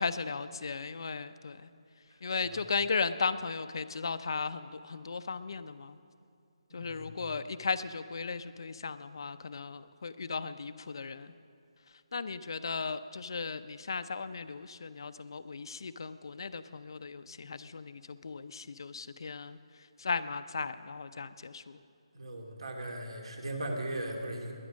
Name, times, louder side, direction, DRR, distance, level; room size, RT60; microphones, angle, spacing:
voice 1, 0.0-1.7 2.2-6.0 6.7-11.3 12.1-19.6 20.0-21.8, left 4 dB, 50° left, 12 dB, 0.6 m, -36 dB
voice 2, 6.7-7.2 22.1-24.5, right 1 dB, 70° right, 2 dB, 2.7 m, -38 dB
21.0 x 9.9 x 6.3 m, 2.5 s
hypercardioid pair, 175°, 3 cm